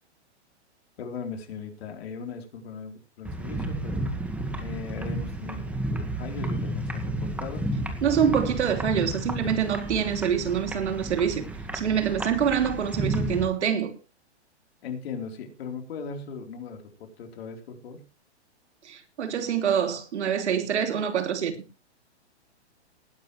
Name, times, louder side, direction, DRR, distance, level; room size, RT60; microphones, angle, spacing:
voice 1, 1.0-4.0 4.6-7.7 8.2-8.3 14.8-18.0, left 5 dB, 60° left, 4.1 m, -38 dB
sound 1, 3.2-13.5, right 1 dB, 5° right, 1.8 m, -32 dB
voice 2, 8.0-11.4 11.7-13.9 18.8-21.6, right 8 dB, 75° right, 3.0 m, -25 dB
19.5 x 11.0 x 3.3 m
hypercardioid pair, 140°, 34 cm